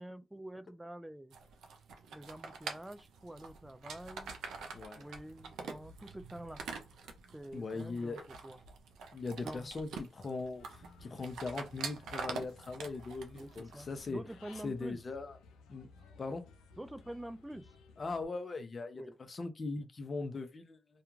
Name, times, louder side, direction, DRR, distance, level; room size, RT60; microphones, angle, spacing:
voice 1, 0.0-1.4 2.1-4.4 5.0-6.6 7.3-8.6 9.4-9.7 13.3-15.0 16.8-17.7 18.9-19.2, right 1 dB, 10° right, 0.4 m, -47 dB
sound 1, 1.3-14.1, right 4 dB, 85° right, 0.5 m, -46 dB
voice 2, 4.7-5.0 7.5-8.2 9.1-14.2 14.6-15.4 15.7-15.9 16.2-16.4 18.0-20.8, left 3 dB, 45° left, 0.6 m, -40 dB
Human voice / Bird, 10.6-18.2, left 4 dB, 90° left, 0.4 m, -58 dB
2.3 x 2.3 x 3.0 m
supercardioid pair, 55°, 0 cm